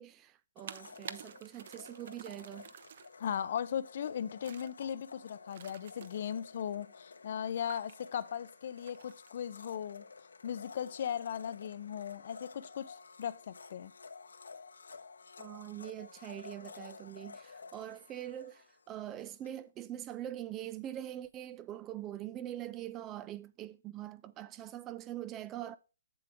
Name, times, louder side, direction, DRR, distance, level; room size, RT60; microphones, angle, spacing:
voice 1, 0.0-2.7 15.4-25.8, right 12 dB, 15° right, 0.4 m, -43 dB
Domestic sounds home sounds, 0.6-19.3, left 4 dB, 85° left, 1.1 m, -52 dB
sound 1, 0.6-3.2 4.4-4.7 5.5-6.4 7.7-8.0 8.8-9.3, right 8 dB, 50° right, 0.7 m, -49 dB
voice 2, 3.2-10.0 10.4-13.9, left 8 dB, 50° left, 0.6 m, -38 dB
7.8 x 7.5 x 3.6 m
hypercardioid pair, 160°, 0 cm